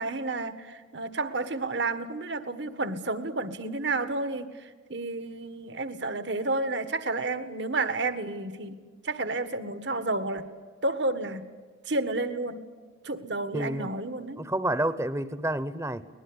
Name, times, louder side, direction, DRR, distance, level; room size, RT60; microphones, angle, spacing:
voice 1, 0.0-8.8 9.0-10.4 10.8-11.4 11.8-12.6 13.0-14.4, right 2 dB, 65° right, 12 dB, 1.7 m, -31 dB
voice 2, 13.5-13.9 14.4-16.1, right 1 dB, 15° right, 15 dB, 0.9 m, -29 dB
23.5 x 20.0 x 9.8 m, 1.4 s
head